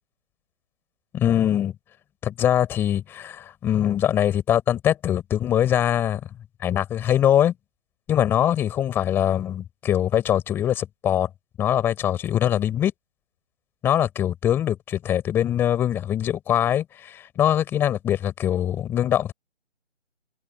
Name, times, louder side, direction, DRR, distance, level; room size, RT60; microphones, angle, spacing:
voice 1, 1.1-1.7 2.2-6.3 6.6-7.5 8.1-11.3 11.6-12.9 13.8-19.3, left 10 dB, 5° left, 4.1 m, -22 dB
open air
figure-of-eight pair, 170°, 36 cm